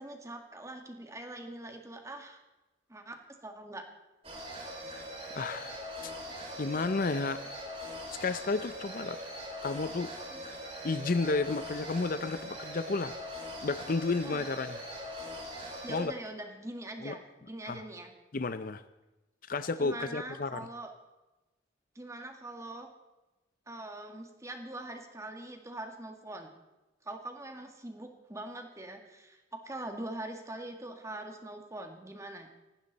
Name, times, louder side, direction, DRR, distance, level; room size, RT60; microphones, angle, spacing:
voice 1, 0.0-2.4 2.9-3.2 3.4-3.9 10.3-10.4 14.2-14.5 15.8-18.1 19.8-20.9 22.0-22.9 23.7-26.6 27.0-32.5, right 1 dB, 15° right, 4 dB, 1.9 m, -43 dB
sound 1, 4.2-16.0, equal, 35° right, 5.4 m, -42 dB
voice 2, 5.3-6.1 6.6-7.4 8.2-9.2 9.6-10.1 10.8-13.2 13.6-14.8 15.9-16.1 17.0-17.1 17.7-17.8 18.3-18.8 19.5-20.7, left 3 dB, 50° left, 12 dB, 0.6 m, -32 dB
18.5 x 15.0 x 4.1 m, 1.1 s
head